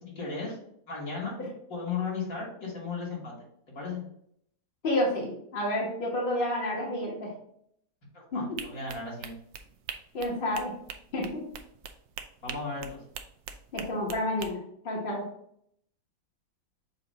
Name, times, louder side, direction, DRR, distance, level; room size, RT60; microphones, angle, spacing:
voice 1, 0.0-0.6 0.9-1.3 1.7-3.3 3.7-4.0 8.1-9.4 12.4-13.0, left 4 dB, 55° left, -3 dB, 2.2 m, -35 dB
voice 2, 4.8-7.3 8.3-8.4 10.1-10.7 11.1-11.4 13.7-15.2, left 1 dB, 35° left, -3 dB, 1.4 m, -30 dB
sound 1, 8.6-14.5, right 7 dB, 70° right, 0.8 m, -42 dB
6.8 x 2.6 x 5.3 m, 0.70 s
omnidirectional pair, 1.8 m